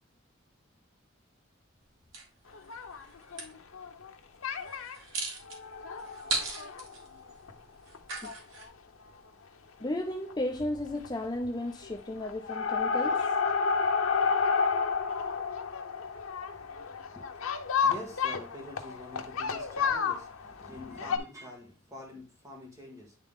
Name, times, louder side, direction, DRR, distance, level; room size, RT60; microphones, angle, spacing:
sound 1, 2.1-3.5 4.6-8.7, right 3 dB, 75° right, 2.1 m, -37 dB
sound 2, 2.5-4.1 4.4-5.0 5.5-7.5 7.9-8.0 8.2-8.3 8.6-8.7 10.1-10.3 10.6-11.1 11.3-11.9 12.2-21.2, left 5 dB, 90° left, 0.8 m, -31 dB
voice 1, 9.8-13.3, left 1 dB, 20° left, 0.5 m, -34 dB
voice 2, 17.1-23.2, left 1 dB, 15° right, 1.8 m, -46 dB
9.6 x 3.5 x 3.6 m
head